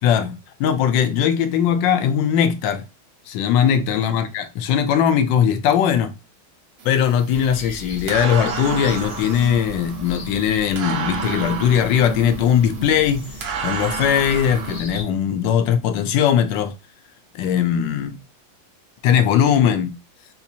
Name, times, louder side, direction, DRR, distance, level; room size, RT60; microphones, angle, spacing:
voice 1, 0.0-2.8 3.3-6.1 6.8-13.3 13.6-16.7 17.3-18.2 19.0-19.9, left 8 dB, 75° left, 1.2 m, -19 dB
sound 1, 6.8-14.8, right 6 dB, 70° right, 1.4 m, -31 dB
sound 2, 7.3-15.0, left 1 dB, 55° left, 0.8 m, -38 dB
4.3 x 2.5 x 2.7 m
omnidirectional pair, 2.2 m